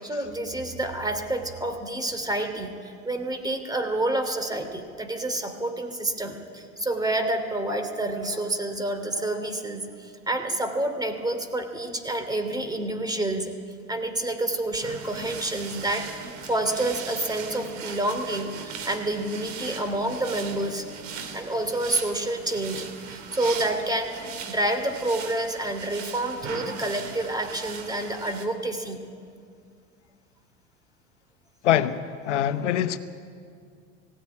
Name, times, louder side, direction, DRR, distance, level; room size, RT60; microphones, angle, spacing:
voice 1, 0.0-13.5 13.9-20.8 21.3-24.1 24.5-29.0, right 1 dB, 10° right, 2.8 m, -28 dB
sound 1, 14.7-28.5, right 6 dB, 50° right, 3.1 m, -39 dB
voice 2, 31.6-33.0, left 10 dB, 90° left, 1.0 m, -24 dB
18.5 x 16.5 x 9.6 m
hypercardioid pair, 90°, 35 cm